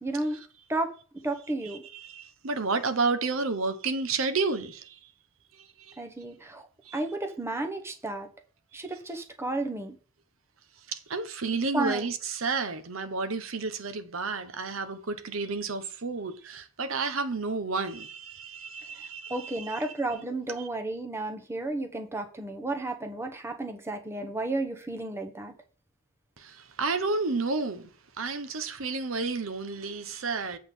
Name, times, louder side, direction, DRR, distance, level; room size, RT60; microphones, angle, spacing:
voice 1, 0.0-0.4 0.7-0.9 1.2-1.8 6.0-6.7 6.9-8.3 8.7-10.0 11.7-12.0 19.3-25.5, right 2 dB, 10° right, 1.0 m, -32 dB
voice 2, 1.6-5.1 5.5-6.0 6.8-7.0 10.9-19.9 20.6-20.7 26.4-27.9 28.2-30.6, right 4 dB, 70° right, 0.9 m, -31 dB
8.2 x 3.8 x 6.8 m
head